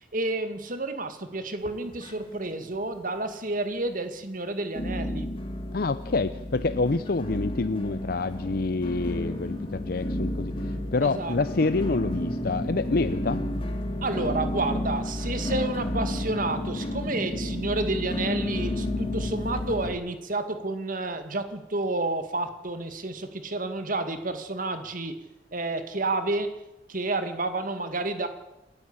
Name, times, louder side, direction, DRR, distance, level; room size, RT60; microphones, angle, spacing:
voice 1, 0.0-5.3 11.0-11.4 14.0-25.2 25.5-26.6 26.9-28.3, right 2 dB, 50° right, 9 dB, 2.1 m, -30 dB
sound 1, 1.6-2.5 2.8-3.4 3.9-4.0 4.8-19.9, left 1 dB, 30° left, 2.7 m, -31 dB
voice 2, 5.7-13.4, left 3 dB, 55° left, 13 dB, 0.6 m, -27 dB
28.5 x 11.0 x 8.7 m, 0.92 s
head